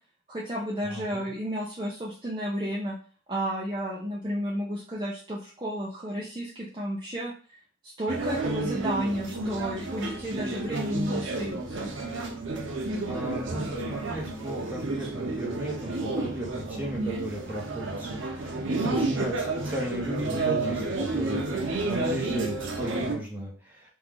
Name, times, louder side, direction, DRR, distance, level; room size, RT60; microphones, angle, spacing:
voice 1, 0.3-2.9 3.3-7.3 8.0-11.9, equal, 25° right, -5 dB, 0.5 m, -32 dB
voice 2, 0.8-1.3 13.1-23.8, right 1 dB, 10° right, -4 dB, 0.9 m, -35 dB
sound 1, 8.1-23.2, right 2 dB, 85° right, 0.7 m, -31 dB
3.0 x 2.4 x 3.7 m, 0.39 s
head